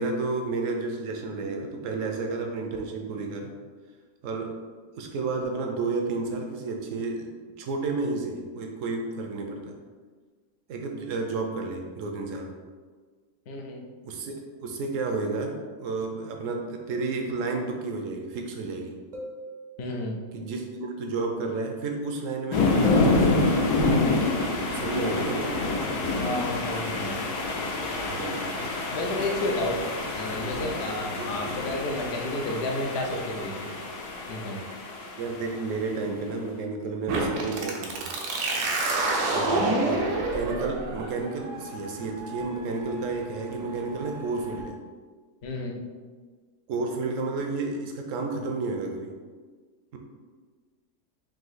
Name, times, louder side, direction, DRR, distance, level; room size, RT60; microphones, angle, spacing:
voice 1, 0.0-3.5 4.2-4.5 4.9-7.3 7.6-9.7 10.7-12.5 14.0-14.3 14.6-18.9 20.3-23.6 24.6-25.7 28.1-28.5 31.1-31.3 35.2-38.2 39.8-44.7 46.7-49.1, right 3 dB, 70° right, 3 dB, 0.8 m, -31 dB
voice 2, 13.5-13.9 19.8-20.2 26.2-27.4 28.0-28.1 28.6-29.8 30.1-33.7 34.3-34.6 39.3-39.7 45.4-45.9, left 1 dB, 65° left, 1 dB, 0.6 m, -32 dB
sound 1, 19.1-20.2 22.8-24.1, equal, 50° right, 0.5 m, -40 dB
sound 2, 22.5-35.9, left 3 dB, 85° left, 1.2 m, -27 dB
sound 3, 37.1-44.6, right 2 dB, 85° right, 1.2 m, -29 dB
3.7 x 2.7 x 4.0 m, 1.5 s
omnidirectional pair, 1.6 m